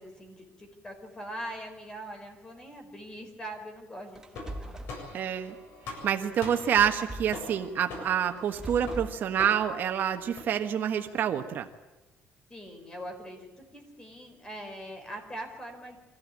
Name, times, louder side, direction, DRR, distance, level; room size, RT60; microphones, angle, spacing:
voice 1, 0.0-4.2 4.6-4.8 12.5-16.0, right 1 dB, 20° left, 4 dB, 5.0 m, -42 dB
sound 1, 4.2-5.0 6.8-7.4 8.4-9.2, right 1 dB, 15° right, 1.3 m, -40 dB
sound 2, 4.3-10.4, left 2 dB, 70° left, 7.5 m, -44 dB
voice 2, 5.1-5.6 6.0-11.7, right 9 dB, 55° right, 6 dB, 1.4 m, -27 dB
24.5 x 15.5 x 8.8 m, 1.2 s
cardioid pair, 130°, 4 cm